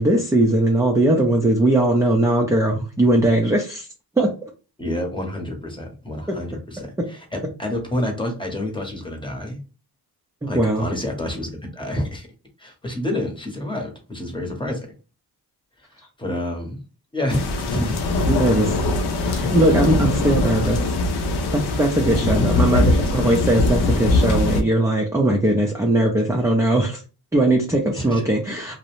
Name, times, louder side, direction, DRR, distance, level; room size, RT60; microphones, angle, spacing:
voice 1, 0.0-3.9 4.2-4.3 10.5-10.8 18.3-18.8 19.2-20.9 21.5-27.0 27.3-28.8, right 1 dB, 10° right, 0 dB, 0.4 m, -19 dB
voice 2, 4.8-9.6 10.5-12.3 12.6-14.9 16.2-16.8 17.1-17.9 22.1-22.4 22.7-23.3 27.9-28.2, left 1 dB, 10° left, 2 dB, 0.8 m, -28 dB
sound 1, 17.3-24.6, left 2 dB, 80° left, 0.6 m, -21 dB
2.5 x 2.0 x 2.9 m, 0.34 s
cardioid pair, 100°, 39 cm